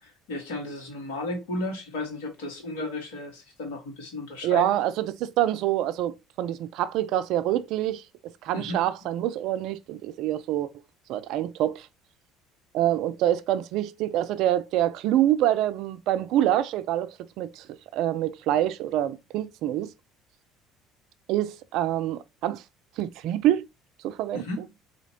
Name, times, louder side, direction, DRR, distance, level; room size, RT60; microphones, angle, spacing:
voice 1, 0.0-4.8 8.5-8.8 24.3-24.7, left 2 dB, 75° left, 1.5 m, -34 dB
voice 2, 4.4-8.0 8.4-10.7 11.1-11.9 12.7-17.7 17.9-19.9 21.3-22.6 23.0-23.7 24.0-24.4, right 12 dB, 65° right, 0.4 m, -26 dB
4.2 x 2.8 x 2.7 m
hypercardioid pair, 60°, 0 cm